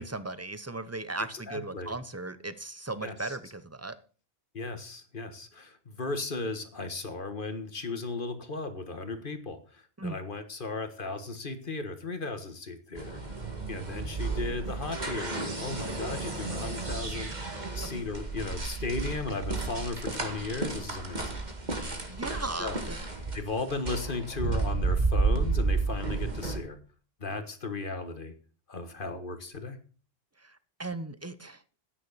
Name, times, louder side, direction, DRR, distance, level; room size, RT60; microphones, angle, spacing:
voice 1, 0.0-3.9 10.0-10.2 22.1-23.0 30.4-31.6, right 2 dB, 15° right, 14 dB, 0.9 m, -37 dB
voice 2, 1.3-2.0 3.0-3.4 4.5-13.2 13.7-17.3 17.7-21.4 22.6-22.8 23.3-26.8 27.2-28.3 28.7-29.8, left 3 dB, 55° left, 9 dB, 1.8 m, -36 dB
sound 1, 12.9-26.6, right 3 dB, 45° right, 2.2 m, -32 dB
13.0 x 9.7 x 4.2 m, 0.39 s
omnidirectional pair, 1.0 m